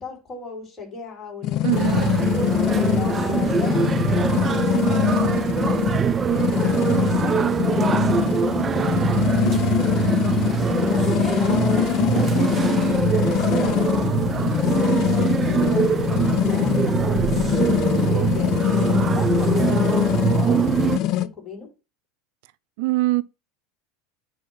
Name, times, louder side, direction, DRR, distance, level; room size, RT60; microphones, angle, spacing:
voice 1, 0.0-2.1 2.9-6.5 7.2-8.4 8.9-14.2 14.5-21.7, left 5 dB, 25° left, 4.1 m, -39 dB
sound 1, 1.4-21.3, left 13 dB, 50° left, 0.6 m, -23 dB
voice 2, 1.6-2.1 22.8-23.2, right 19 dB, 70° right, 0.6 m, -22 dB
sound 2, 1.7-21.0, right 7 dB, 25° right, 0.6 m, -23 dB
sound 3, 12.9-20.8, right 3 dB, 90° right, 2.1 m, -39 dB
8.8 x 3.0 x 5.7 m
supercardioid pair, 105°, 0 cm